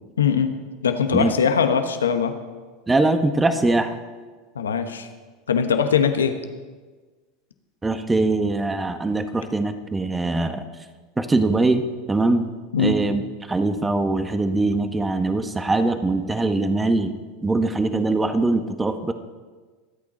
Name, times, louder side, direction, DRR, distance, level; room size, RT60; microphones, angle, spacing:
voice 1, 0.2-0.6 0.8-2.3 4.5-5.1 5.5-6.3 12.7-13.0, left 6 dB, 90° left, 8 dB, 1.1 m, -21 dB
voice 2, 2.9-3.9 7.8-10.6 11.2-12.5 12.8-13.2 13.5-19.1, right 2 dB, 15° right, 9 dB, 1.2 m, -22 dB
23.5 x 8.6 x 4.3 m, 1.4 s
hypercardioid pair, 90°, 0 cm